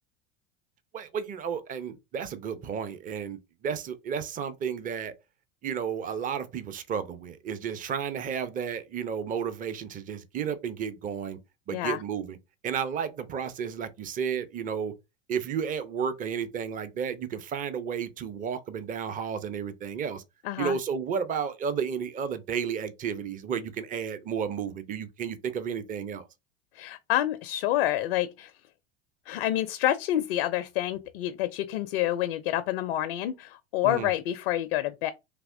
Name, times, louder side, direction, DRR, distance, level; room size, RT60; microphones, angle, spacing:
voice 1, 0.9-5.1 5.6-11.4 11.7-12.4 12.6-14.9 15.3-20.2 20.6-26.2 33.8-34.1, right 7 dB, 25° right, 0.6 m, -32 dB
voice 2, 20.4-20.8 26.8-28.5 29.3-35.1, left 13 dB, 70° left, 0.4 m, -28 dB
3.3 x 2.8 x 2.6 m
hypercardioid pair, 85°, 30 cm